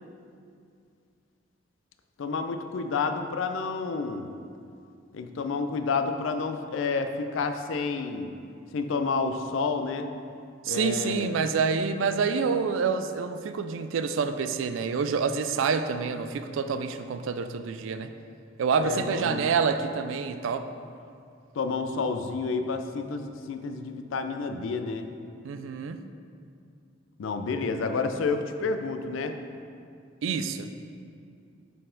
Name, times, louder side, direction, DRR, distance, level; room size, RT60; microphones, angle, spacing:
voice 1, 2.2-4.3 5.1-8.3 8.7-10.1 10.7-11.4 18.8-19.4 21.6-25.1 27.2-29.4, left 4 dB, 75° left, 8 dB, 0.4 m, -30 dB
voice 2, 10.7-18.1 18.6-20.7 25.4-26.0 30.2-30.7, right 5 dB, 75° right, 10 dB, 0.3 m, -27 dB
6.5 x 4.1 x 3.8 m, 2.4 s
head